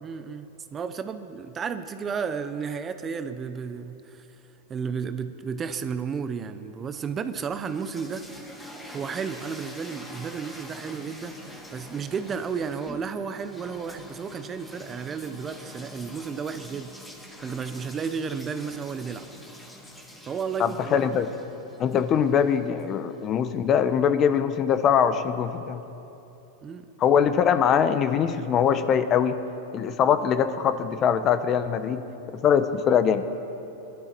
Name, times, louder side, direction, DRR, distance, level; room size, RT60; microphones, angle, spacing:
voice 1, 0.0-4.3 4.7-8.2 8.9-17.0 17.4-19.2 20.3-21.1 26.6-26.9, right 6 dB, 25° right, 10 dB, 0.7 m, -33 dB
sound 1, 7.3-23.3, equal, 5° left, 1.9 m, -45 dB
voice 2, 20.6-21.3 21.8-25.8 27.0-29.4 29.7-32.0 32.4-33.2, left 8 dB, 35° left, 11 dB, 0.7 m, -22 dB
20.5 x 12.0 x 4.5 m, 2.9 s
hypercardioid pair, 125°, 0 cm